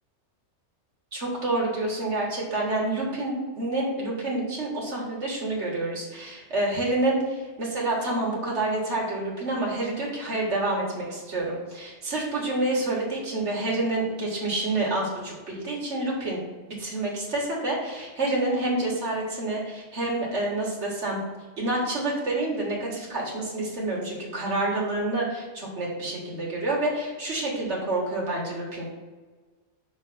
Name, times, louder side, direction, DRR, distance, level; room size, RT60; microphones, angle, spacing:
voice 1, 1.1-16.4 16.7-21.2 21.6-28.9, right 2 dB, 75° right, -3 dB, 2.0 m, -28 dB
6.1 x 3.3 x 5.5 m, 1.4 s
omnidirectional pair, 1.2 m